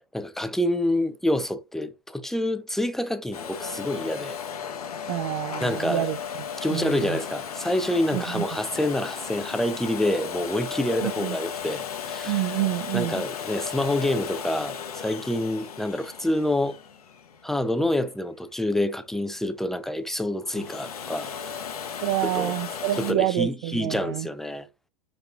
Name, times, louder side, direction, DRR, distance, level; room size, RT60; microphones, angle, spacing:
voice 1, 0.1-4.4 5.6-6.1 6.6-12.4 12.9-16.8 17.4-21.3 22.2-22.5 23.0-24.7, left 1 dB, ahead, 0.5 m, -27 dB
Domestic sounds home sounds, 3.3-18.1 20.4-23.1, left 7 dB, 80° left, 1.0 m, -35 dB
voice 2, 5.1-6.2 6.7-7.2 8.1-8.4 11.0-11.4 12.3-13.2 22.0-24.3, right 15 dB, 55° right, 0.4 m, -27 dB
5.2 x 4.2 x 2.3 m
hypercardioid pair, 100°, 19 cm